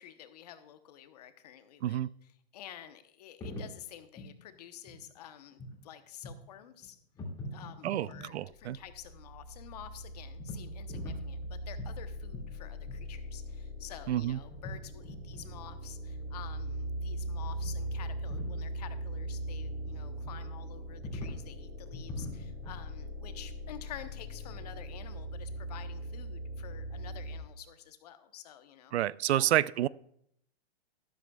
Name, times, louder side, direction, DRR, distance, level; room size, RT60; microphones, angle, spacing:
voice 1, 0.0-7.0 7.5-28.9 29.3-29.5, left 10 dB, 40° left, 10 dB, 0.9 m, -50 dB
sound 1, 3.4-3.8 4.2-4.3 4.8-5.0 5.5-5.8 6.2-6.5 6.7-6.9 7.1-8.3 10.4-11.5 11.8-12.0 12.3-12.5 12.8-13.0 13.2-13.3 13.5-13.6 14.5-14.8 15.0-15.5 17.6-17.8 18.0-18.6 20.2-20.4 21.0-21.4 21.9-22.8, left 1 dB, 10° left, 2.1 m, -42 dB
voice 2, 7.8-8.8 14.1-14.4 28.9-29.9, right 12 dB, 80° right, 20 dB, 0.5 m, -29 dB
sound 2, 8.6-27.4, right 1 dB, 45° right, 4.1 m, -40 dB
13.0 x 12.5 x 2.3 m, 0.71 s
hypercardioid pair, 170°, 32 cm